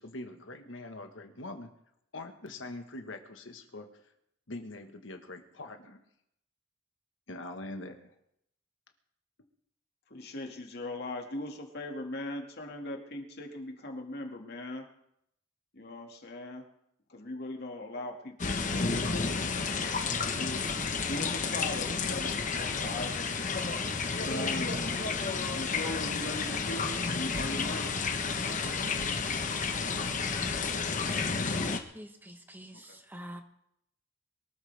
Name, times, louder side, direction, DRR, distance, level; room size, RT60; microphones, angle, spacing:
voice 1, 0.0-1.7 2.1-4.1 4.5-6.0 7.3-8.1, left 2 dB, 85° left, 5 dB, 1.4 m, -43 dB
voice 2, 10.1-14.9 15.7-16.6 17.1-20.6 21.1-23.2 24.2-24.9 25.5-27.9 31.5-31.7, left 2 dB, 60° left, 3 dB, 2.1 m, -40 dB
sound 1, 18.4-31.8, left 4 dB, 40° left, 1.0 m, -31 dB
voice 3, 31.9-33.4, equal, 10° right, 6 dB, 1.1 m, -46 dB
23.0 x 13.0 x 3.5 m, 0.76 s
head